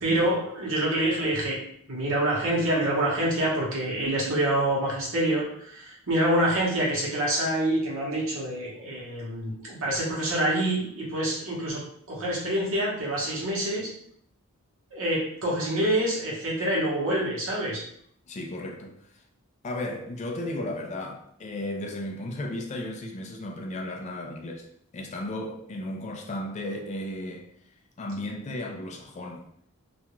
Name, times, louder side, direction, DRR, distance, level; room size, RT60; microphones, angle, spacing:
voice 1, 0.0-1.6 1.9-11.8 12.1-13.9 14.9-17.8, right 1 dB, 60° right, 0.9 m, -26 dB
voice 2, 18.3-19.2 19.6-24.7 24.9-27.5 28.0-29.4, left 1 dB, 30° left, 0.3 m, -34 dB
2.4 x 2.2 x 2.9 m
head